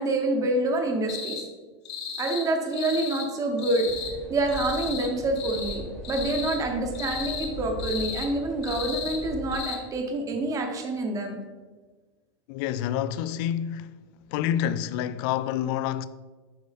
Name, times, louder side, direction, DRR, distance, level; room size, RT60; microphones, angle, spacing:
voice 1, 0.0-1.4 2.2-3.9 4.3-11.4, right 2 dB, 25° right, 1.2 m, -27 dB
sound 1, 1.1-1.4 1.8-2.5 2.7-3.3 3.6-4.1 4.5-5.1 5.3-5.8 6.0-6.6 6.9-7.5 7.8-8.3 8.6-9.2 9.5-9.8, left 7 dB, 75° left, 2.2 m, -35 dB
sound 2, 3.8-9.6, left 1 dB, ahead, 1.3 m, -39 dB
voice 2, 12.5-14.0 14.3-16.0, left 10 dB, 55° left, 0.4 m, -28 dB
7.5 x 5.2 x 3.6 m
supercardioid pair, 135°, 15 cm